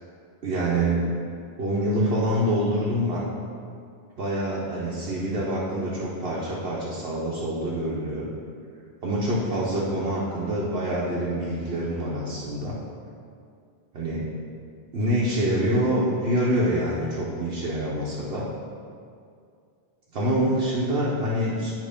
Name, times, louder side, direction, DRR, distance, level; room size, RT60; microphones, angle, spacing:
voice 1, 0.4-1.1 1.6-3.2 4.2-8.3 9.0-12.8 13.9-14.3 14.9-18.5 20.1-21.7, right 1 dB, 70° right, -6 dB, 1.1 m, -26 dB
9.0 x 3.0 x 5.0 m, 2.3 s
omnidirectional pair, 1.1 m